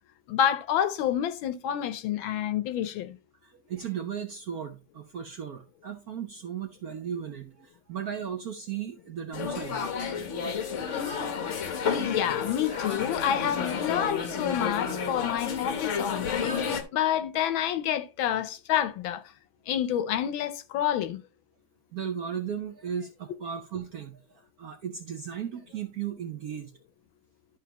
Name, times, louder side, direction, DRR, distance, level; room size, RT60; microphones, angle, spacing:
voice 1, 0.3-3.2 12.0-19.2 19.7-21.2, left 10 dB, 75° left, 1.4 m, -28 dB
voice 2, 3.4-9.8 21.9-26.7, right 8 dB, 65° right, 0.9 m, -36 dB
sound 1, 9.3-16.8, left 6 dB, 50° left, 0.9 m, -31 dB
11.5 x 5.6 x 2.9 m
omnidirectional pair, 2.3 m